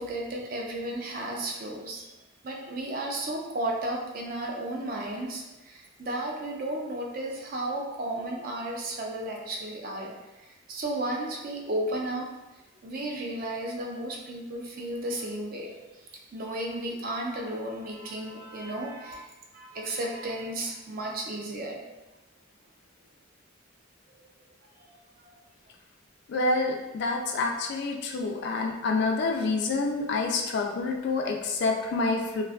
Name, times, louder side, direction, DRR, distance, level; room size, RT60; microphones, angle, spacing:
voice 1, 0.0-2.1 2.4-12.3 12.8-15.7 16.3-21.8 24.2-24.3 24.9-25.0 25.2-25.3, right 1 dB, 45° right, -1 dB, 0.4 m, -34 dB
voice 2, 26.3-32.4, left 3 dB, 55° left, 1 dB, 0.3 m, -27 dB
2.5 x 2.3 x 2.3 m, 1.1 s
head